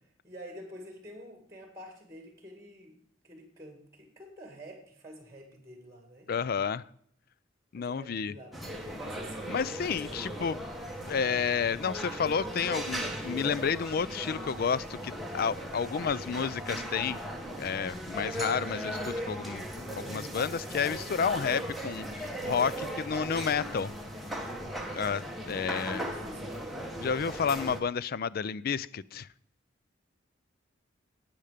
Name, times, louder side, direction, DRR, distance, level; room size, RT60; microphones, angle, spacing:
voice 1, 0.2-3.0 3.2-6.3 7.8-8.6 8.9-10.5 11.2-11.5 15.9-16.2 18.1-18.4 25.5-26.7, equal, 15° right, 4 dB, 2.1 m, -48 dB
voice 2, 6.3-6.8 7.7-8.3 9.5-10.6 11.0-17.2 17.6-19.0 19.3-23.9 24.9-26.0 27.0-29.3, left 6 dB, 50° left, 19 dB, 0.4 m, -31 dB
sound 1, 8.5-27.8, equal, ahead, 1.3 m, -38 dB
12.0 x 8.8 x 5.1 m, 0.65 s
head